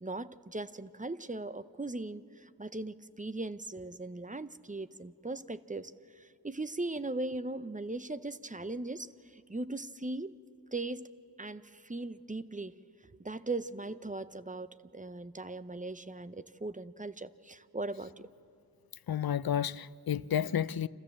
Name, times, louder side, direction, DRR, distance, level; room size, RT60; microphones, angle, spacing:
voice 1, 0.0-10.4 10.7-11.1 11.4-12.8 13.2-18.3, right 2 dB, 20° right, 0.6 m, -39 dB
voice 2, 19.1-20.9, left 9 dB, 65° left, 0.5 m, -31 dB
27.0 x 15.0 x 7.5 m
wide cardioid pair, 50°, 39 cm